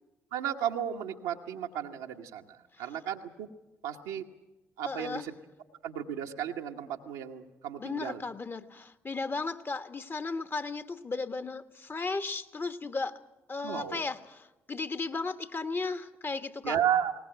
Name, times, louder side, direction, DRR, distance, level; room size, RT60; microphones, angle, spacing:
voice 1, 0.3-3.5 3.8-4.2 4.8-5.3 5.8-8.2 13.6-14.0 16.6-17.1, right 9 dB, 85° right, 1 dB, 1.1 m, -33 dB
voice 2, 4.8-5.3 7.8-13.2 13.5-16.8, left 3 dB, 35° left, 10 dB, 1.2 m, -35 dB
21.0 x 19.0 x 7.9 m, 1.0 s
hypercardioid pair, 45°, 7 cm